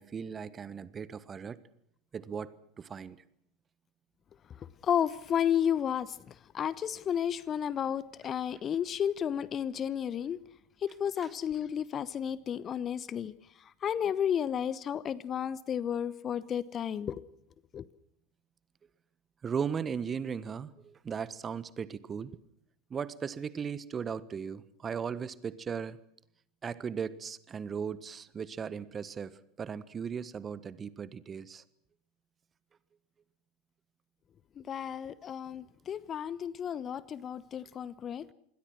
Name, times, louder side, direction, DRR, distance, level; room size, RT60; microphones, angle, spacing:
voice 1, 0.0-1.6 2.1-3.2 11.2-11.3 19.4-22.4 22.9-26.0 26.6-31.6, right 6 dB, 25° right, 17 dB, 1.4 m, -37 dB
voice 2, 4.8-6.1 6.5-10.4 10.8-13.3 13.8-17.2 17.7-17.8 34.7-38.2, left 9 dB, 30° left, 20 dB, 1.0 m, -32 dB
27.5 x 22.0 x 6.3 m, 0.71 s
figure-of-eight pair, 80°, 0 cm